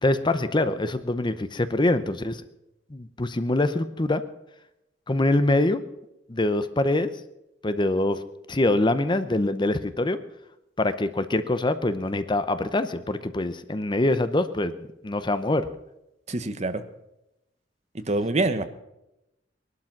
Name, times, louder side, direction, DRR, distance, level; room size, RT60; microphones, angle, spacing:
voice 1, 0.0-2.4 2.9-4.2 5.1-5.8 6.3-7.1 7.6-8.2 8.5-10.2 10.8-14.8 15.0-15.7, left 2 dB, 25° left, 12 dB, 0.7 m, -24 dB
voice 2, 16.3-16.8 17.9-18.6, right 2 dB, 35° right, 11 dB, 1.1 m, -25 dB
19.5 x 12.0 x 6.0 m, 0.89 s
head